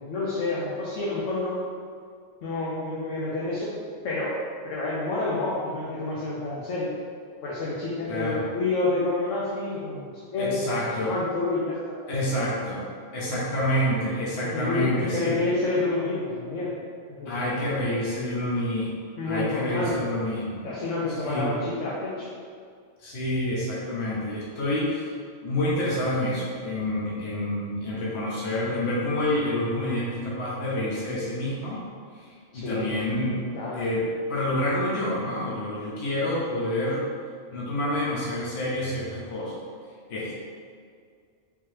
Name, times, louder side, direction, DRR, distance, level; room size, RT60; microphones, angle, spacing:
voice 1, 0.0-1.6 2.4-3.7 4.0-4.4 4.6-6.9 7.4-10.0 10.3-10.8 11.1-11.8 14.5-16.7 17.1-17.5 19.2-20.0 20.6-22.3 32.5-32.9 33.5-33.8, left 2 dB, 85° left, -7 dB, 1.0 m, -28 dB
voice 2, 8.1-8.5 10.4-11.1 12.1-12.8 13.1-15.4 17.2-18.9 19.2-20.6 21.2-21.5 23.0-25.1 25.4-31.8 32.1-32.2 32.5-33.4 33.7-37.1 37.5-39.5 40.1-40.4, left 1 dB, 65° left, -6 dB, 1.0 m, -28 dB
3.6 x 2.9 x 3.1 m, 2.1 s
omnidirectional pair, 1.2 m